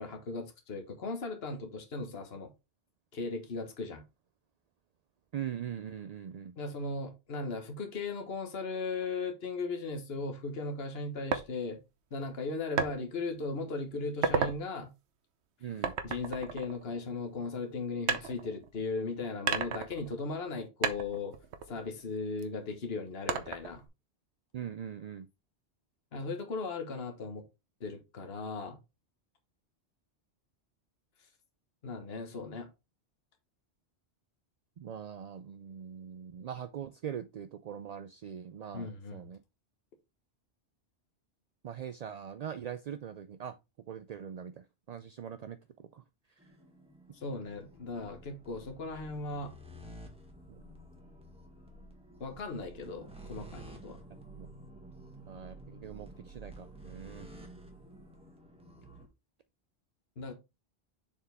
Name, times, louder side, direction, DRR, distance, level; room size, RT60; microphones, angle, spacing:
voice 1, 0.0-2.5 3.1-4.0 6.6-11.8 12.1-14.9 16.0-21.4 21.7-23.8 26.1-27.5 27.8-28.8 31.8-32.7 38.7-39.2 47.1-49.5 52.2-54.0 60.2-60.3, left 3 dB, 65° left, 1.5 m, -37 dB
voice 2, 5.3-6.6 15.6-15.9 24.5-25.3 34.8-39.4 41.6-43.5 43.9-46.0 46.3-46.5 50.5-50.6 54.4-54.5 55.3-57.3, right 9 dB, 60° right, 0.4 m, -42 dB
sound 1, 11.3-11.5 12.8-12.9 13.5-13.7 14.1-14.6 15.8-17.3 18.1-19.0 19.5-20.5 20.8-22.4 23.3-23.9, right 6 dB, 75° right, 1.1 m, -33 dB
sound 2, 46.4-59.1, right 1 dB, 5° right, 1.5 m, -51 dB
6.9 x 4.6 x 3.4 m
omnidirectional pair, 1.1 m